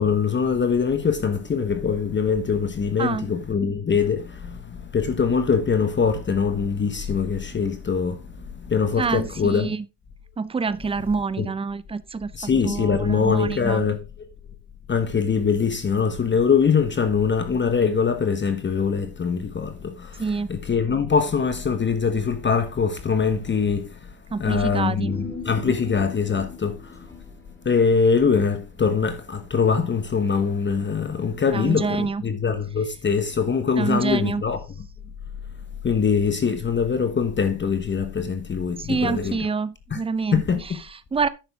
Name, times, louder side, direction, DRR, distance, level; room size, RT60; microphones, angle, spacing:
voice 1, 0.0-9.7 11.4-11.5 12.3-14.3 14.9-24.1 24.4-27.1 27.6-34.6 35.8-39.4 39.9-40.0 40.3-40.6, left 6 dB, 25° left, 1.1 m, -23 dB
voice 2, 3.0-3.3 9.0-9.8 10.4-12.3 12.6-13.9 20.2-20.5 24.3-25.2 31.5-32.2 33.8-34.4 38.8-41.3, right 4 dB, 10° right, 0.6 m, -27 dB
Human voice, 25.0-29.7 30.0-30.1, left 3 dB, 5° left, 4.8 m, -40 dB
10.0 x 6.7 x 3.5 m
supercardioid pair, 95°, 47 cm